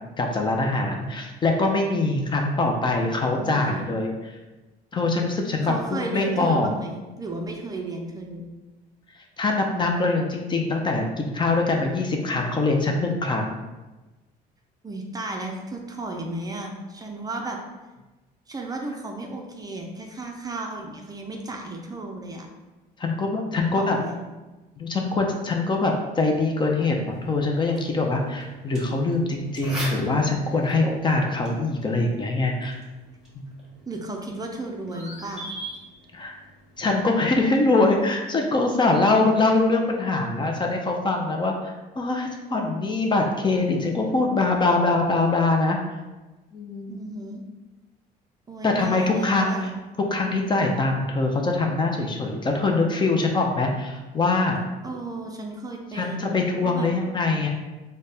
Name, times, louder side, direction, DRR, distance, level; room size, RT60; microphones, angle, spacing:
voice 1, 0.2-4.1 4.9-6.7 9.4-13.6 23.0-24.0 24.8-32.8 33.4-33.5 36.1-36.3 36.8-45.8 46.5-47.0 48.6-49.7 50.1-54.6 55.9-57.5, left 3 dB, 30° left, 2 dB, 0.5 m, -23 dB
voice 2, 3.3-3.9 5.6-8.5 14.8-17.6 18.5-22.5 23.5-24.2 33.9-35.5 46.9-47.4 48.5-49.7 54.8-56.9, right 2 dB, 20° right, 1 dB, 0.5 m, -34 dB
sound 1, 27.1-38.1, right 1 dB, 5° right, 1.2 m, -42 dB
4.0 x 2.2 x 3.3 m, 1.1 s
cardioid pair, 110°, 17 cm